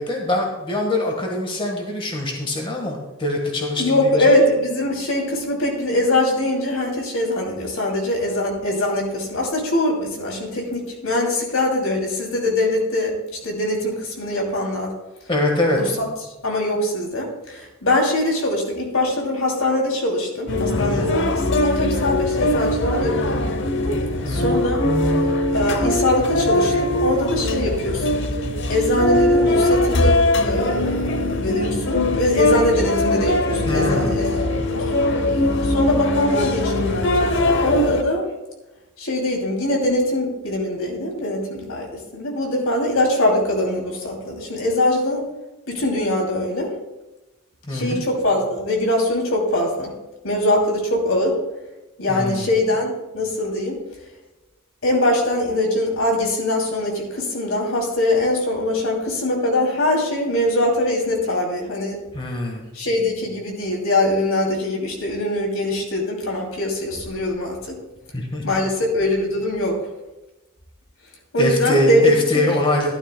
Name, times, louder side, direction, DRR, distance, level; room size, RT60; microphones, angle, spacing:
voice 1, 0.0-4.2 15.3-15.8 20.8-21.1 24.2-24.6 33.6-34.3 47.7-48.0 52.1-52.5 62.1-62.7 68.1-68.4 71.4-72.9, left 1 dB, 25° left, 1 dB, 1.4 m, -23 dB
voice 2, 3.8-14.9 15.7-16.1 16.4-23.4 24.3-24.8 25.5-28.2 28.7-35.0 35.6-38.2 39.0-45.3 45.7-46.7 47.7-49.9 50.2-51.4 52.0-53.8 54.8-62.0 62.7-67.7 68.4-69.8 71.3-72.4, left 1 dB, 80° left, 0 dB, 2.8 m, -22 dB
sound 1, 20.5-38.0, left 1 dB, 60° left, 0.8 m, -21 dB
14.0 x 11.5 x 2.2 m, 1.0 s
head